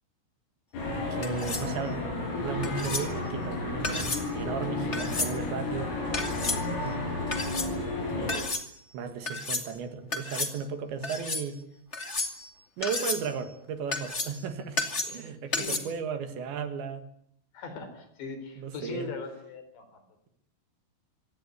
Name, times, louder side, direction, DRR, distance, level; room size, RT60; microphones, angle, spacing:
sound 1, 0.7-8.4, left 2 dB, 80° left, 9.6 m, -32 dB
voice 1, 1.1-2.0 2.4-5.9 6.7-7.0 8.0-8.5 8.9-11.6 12.8-17.0 18.6-19.1, right 6 dB, 65° right, 9 dB, 3.8 m, -35 dB
sound 2, 1.2-1.7 2.6-3.1 3.8-4.3 4.9-5.3 6.1-6.6 7.3-7.7 8.3-8.6 9.2-9.7 10.1-10.5 11.0-11.4 11.9-12.5 12.8-13.3 13.9-14.4 14.8-15.2 15.5-15.8, left 3 dB, 35° left, 1.0 m, -32 dB
voice 2, 15.5-15.8 17.5-20.0, left 4 dB, 60° left, 9 dB, 6.0 m, -39 dB
26.0 x 18.0 x 9.8 m, 0.69 s
omnidirectional pair, 5.8 m